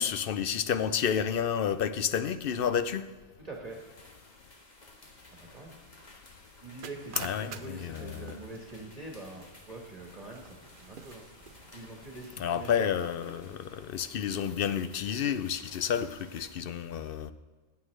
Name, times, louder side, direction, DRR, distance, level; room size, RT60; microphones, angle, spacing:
voice 1, 0.0-3.1 7.2-8.4 12.4-17.3, left 8 dB, 65° left, 0.7 m, -30 dB
voice 2, 3.4-3.8 5.3-5.7 6.6-11.2 11.7-12.9, right 2 dB, 40° right, 1.4 m, -44 dB
sound 1, 3.7-16.5, left 2 dB, 40° left, 1.6 m, -55 dB
sound 2, 6.8-12.6, right 7 dB, 60° right, 0.8 m, -49 dB
15.0 x 9.5 x 3.3 m
omnidirectional pair, 1.1 m